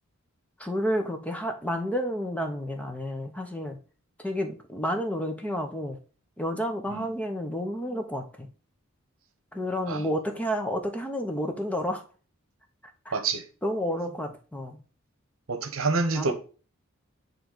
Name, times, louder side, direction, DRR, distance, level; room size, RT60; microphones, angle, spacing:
voice 1, 0.6-3.8 4.2-6.0 6.4-8.5 9.5-12.0 13.0-13.2 13.6-14.8 16.1-16.3, equal, 5° left, 0.9 m, -30 dB
voice 2, 13.1-13.4 15.5-16.3, right 3 dB, 70° right, 0.9 m, -27 dB
7.6 x 3.3 x 3.9 m
head